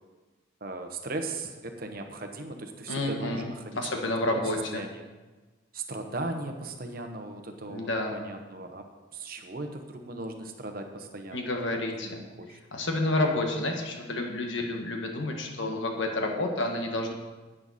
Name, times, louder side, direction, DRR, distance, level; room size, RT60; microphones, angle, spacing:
voice 1, 0.6-4.0 4.3-4.4 4.7-5.0 5.7-8.8 9.1-11.8 12.2-12.6, right 2 dB, 45° right, 5 dB, 1.0 m, -38 dB
voice 2, 2.9-4.8 7.7-8.2 11.3-12.2 12.7-17.1, left 2 dB, 65° left, 2 dB, 1.5 m, -30 dB
11.0 x 8.9 x 4.2 m, 1.2 s
head